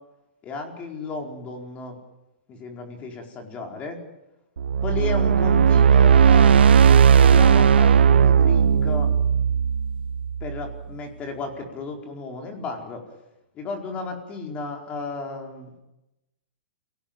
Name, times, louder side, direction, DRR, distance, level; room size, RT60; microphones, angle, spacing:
voice 1, 0.4-2.0 2.5-4.0 4.8-9.1 10.4-13.0 13.5-15.8, left 3 dB, 25° left, 3 dB, 4.7 m, -33 dB
sound 1, 4.6-10.8, right 7 dB, 85° right, 1.3 m, -16 dB
28.5 x 18.5 x 9.0 m, 0.98 s
hypercardioid pair, 150°, 6 cm